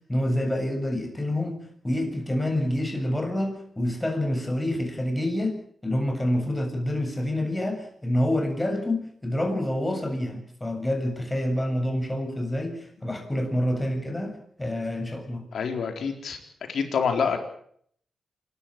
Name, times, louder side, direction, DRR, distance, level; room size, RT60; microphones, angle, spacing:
voice 1, 0.1-15.4, left 1 dB, 15° left, 3 dB, 7.4 m, -27 dB
voice 2, 15.5-16.4 16.7-17.4, left 6 dB, 85° left, 5 dB, 4.1 m, -26 dB
27.5 x 13.0 x 8.9 m, 0.64 s
cardioid pair, 75°, 0 cm